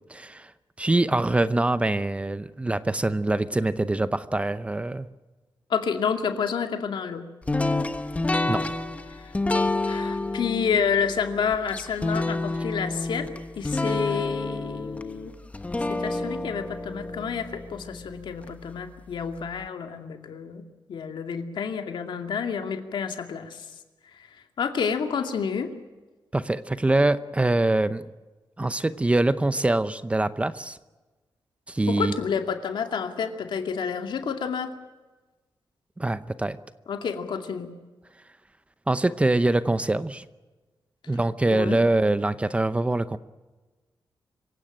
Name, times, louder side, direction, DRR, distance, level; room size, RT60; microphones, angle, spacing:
voice 1, 0.1-0.5 0.8-5.1 8.5-8.6 26.3-28.1 28.6-30.8 31.7-32.2 36.0-36.6 38.9-40.2 41.1-43.2, right 2 dB, 15° right, 13 dB, 0.7 m, -24 dB
voice 2, 5.7-7.2 9.2-9.3 9.9-13.3 13.6-15.3 15.9-20.6 20.9-23.7 24.1-24.3 24.6-25.7 31.9-34.7 36.9-37.7 41.5-41.8, left 6 dB, 75° left, 6 dB, 2.4 m, -29 dB
sound 1, 7.5-18.5, left 2 dB, 15° left, 1.1 m, -29 dB
26.0 x 16.5 x 8.9 m, 1.2 s
wide cardioid pair, 155°, 8 cm